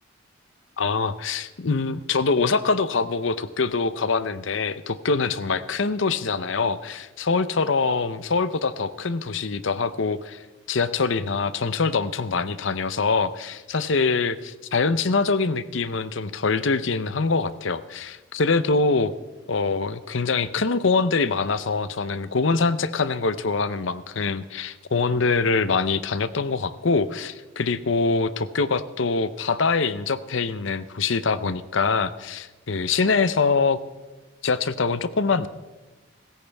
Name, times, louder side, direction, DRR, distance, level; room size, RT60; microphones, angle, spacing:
voice 1, 0.8-19.1 19.5-33.8 34.4-35.5, left 4 dB, 65° left, 14 dB, 0.7 m, -24 dB
25.0 x 14.5 x 3.5 m, 1.1 s
head